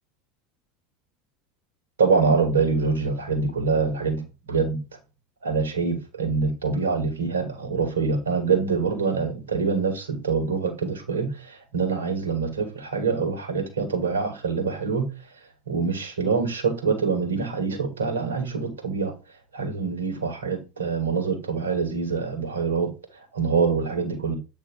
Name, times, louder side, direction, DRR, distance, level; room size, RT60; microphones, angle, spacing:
voice 1, 2.0-4.8 5.4-15.1 15.7-19.1 19.5-22.9 23.3-24.4, right 5 dB, 85° right, 1.5 m, -25 dB
8.1 x 2.9 x 4.7 m
hypercardioid pair, 75°, 0 cm